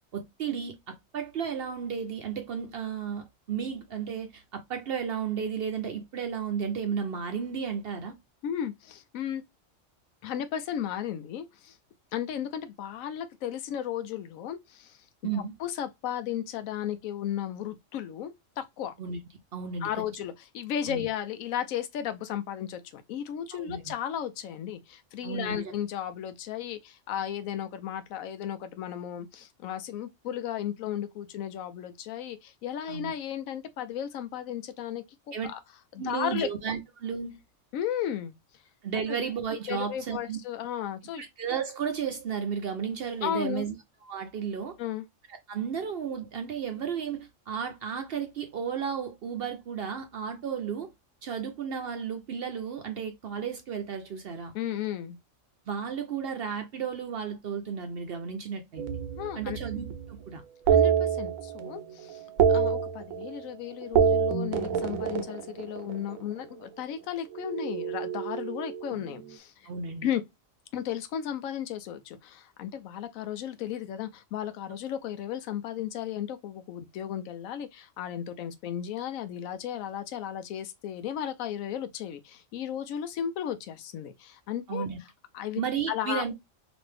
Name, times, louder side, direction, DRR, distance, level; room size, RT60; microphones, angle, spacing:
voice 1, 0.1-8.1 15.2-15.5 19.0-19.2 19.5-19.9 20.9-21.1 23.5-23.9 25.2-25.7 32.9-33.1 35.3-35.5 36.0-37.4 38.8-40.4 41.2-43.7 44.1-44.8 45.5-50.9 51.2-54.5 55.7-58.8 59.4-60.4 69.7-70.1 84.7-85.0 85.6-86.3, right 7 dB, 60° right, 0.6 m, -33 dB
voice 2, 8.4-9.4 10.2-11.8 12.1-15.0 15.3-18.9 19.8-35.0 35.4-35.6 35.9-36.5 37.7-38.3 39.1-39.2 39.7-41.2 43.2-43.7 44.8-45.0 54.5-55.2 59.2-59.6 60.7-62.2 62.5-69.7 70.0-70.2 70.7-84.9 85.3-85.6 85.9-86.2, left 10 dB, 85° left, 1.0 m, -34 dB
sound 1, 58.8-60.1 60.7-61.8 62.1-63.5 63.8-66.2 67.4-69.1, right 8 dB, 85° right, 1.0 m, -27 dB
3.0 x 2.6 x 3.2 m
omnidirectional pair, 1.4 m